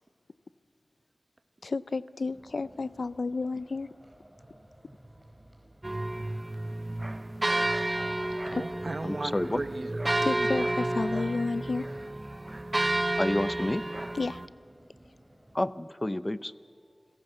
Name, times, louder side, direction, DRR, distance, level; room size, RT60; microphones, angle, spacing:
voice 1, 1.6-3.9 8.5-8.6 10.2-11.9 14.1-14.4, left 3 dB, 85° left, 17 dB, 0.5 m, -31 dB
sound 1, 2.2-15.6, right 1 dB, 20° right, 4.6 m, -56 dB
sound 2, 5.8-14.5, right 1 dB, 35° right, 0.7 m, -31 dB
voice 2, 8.4-10.5, right 2 dB, 65° right, 9 dB, 1.3 m, -37 dB
voice 3, 9.0-9.6 13.2-13.9 15.5-16.5, left 1 dB, 30° left, 15 dB, 0.6 m, -29 dB
28.0 x 16.5 x 8.0 m, 2.2 s
wide cardioid pair, 40°, 0 cm